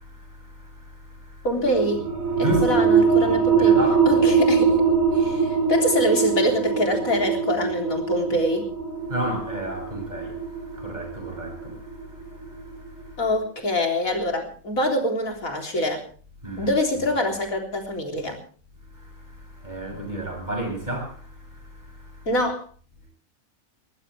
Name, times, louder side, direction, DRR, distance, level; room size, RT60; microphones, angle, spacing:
voice 1, 0.0-1.5 2.4-2.9 3.6-4.3 5.2-5.3 9.1-13.2 16.4-16.7 18.9-22.3, right 1 dB, 30° right, 7.3 m, -33 dB
voice 2, 1.4-2.0 2.4-3.7 4.1-4.9 5.1-8.7 13.2-16.0 16.6-18.4 22.3-22.6, left 1 dB, 80° left, 4.0 m, -25 dB
sound 1, 1.6-12.9, right 5 dB, 80° right, 5.3 m, -22 dB
20.0 x 19.5 x 3.4 m
omnidirectional pair, 1.4 m